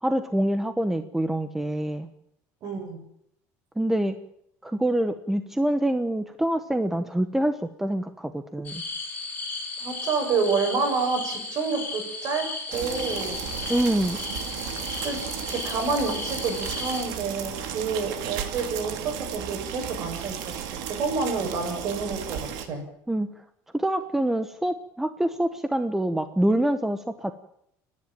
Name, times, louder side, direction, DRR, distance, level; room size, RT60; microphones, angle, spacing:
voice 1, 0.0-2.1 3.8-4.2 4.6-8.8 13.7-14.2 23.1-23.3 23.7-27.3, right 1 dB, 5° right, 10 dB, 1.0 m, -25 dB
voice 2, 2.6-3.0 9.8-13.7 15.0-22.9, right 4 dB, 50° right, 5 dB, 7.5 m, -29 dB
sound 1, 8.6-17.0, left 3 dB, 25° left, 7.6 m, -35 dB
sound 2, 12.7-22.7, right 9 dB, 75° right, 2.7 m, -34 dB
29.5 x 11.0 x 9.0 m, 0.74 s
cardioid pair, 135°, 7 cm